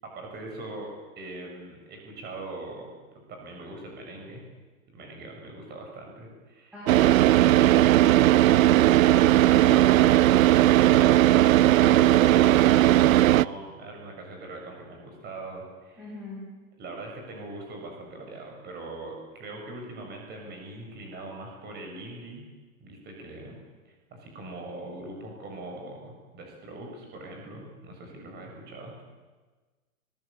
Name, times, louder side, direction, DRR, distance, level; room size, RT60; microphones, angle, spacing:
voice 1, 0.0-4.4 4.9-6.8 8.6-16.1 16.8-22.5 22.8-23.6 24.1-29.0, right 2 dB, 25° right, 1 dB, 6.7 m, -41 dB
voice 2, 6.7-7.9 16.0-16.4, left 1 dB, ahead, -7 dB, 7.8 m, -40 dB
Car / Idling, 6.9-13.5, right 14 dB, 70° right, 0.7 m, -18 dB
23.0 x 20.0 x 8.6 m, 1.3 s
hypercardioid pair, 150°, 42 cm